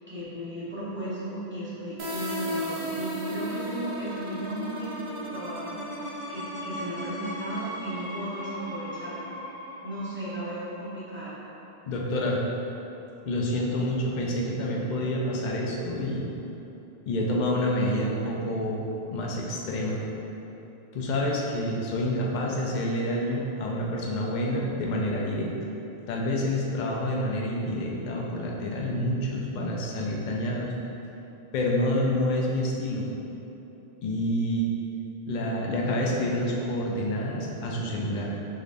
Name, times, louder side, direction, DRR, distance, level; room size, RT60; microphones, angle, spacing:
voice 1, 0.1-9.3 9.8-11.4, right 1 dB, 10° right, -12 dB, 0.9 m, -36 dB
sound 1, 2.0-11.6, equal, 45° right, 0.4 m, -36 dB
voice 2, 11.9-12.4 13.2-16.3 17.1-18.9 19.1-20.0 20.9-25.5 26.1-30.7 31.5-33.1 34.0-34.7 35.3-38.3, left 1 dB, 55° left, -2 dB, 0.6 m, -28 dB
3.7 x 3.2 x 2.5 m, 3.0 s
omnidirectional pair, 1.0 m